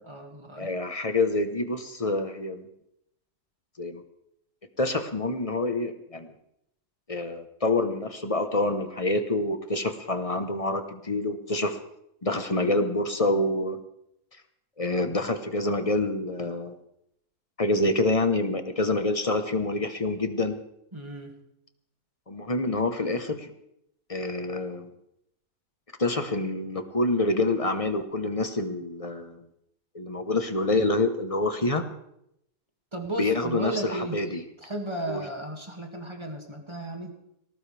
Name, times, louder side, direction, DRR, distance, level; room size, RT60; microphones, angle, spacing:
voice 1, 0.0-0.7 20.9-21.4 32.9-34.2 34.6-37.2, right 2 dB, 15° right, 2 dB, 2.1 m, -34 dB
voice 2, 0.6-2.7 3.8-4.0 4.8-6.3 7.1-11.8 12.2-13.8 14.8-16.7 17.6-20.5 22.3-23.5 24.1-24.9 26.0-29.4 29.9-31.8 33.2-34.4 35.1-35.2, left 2 dB, 25° left, 8 dB, 1.0 m, -27 dB
19.0 x 18.5 x 3.4 m, 0.78 s
omnidirectional pair, 1.7 m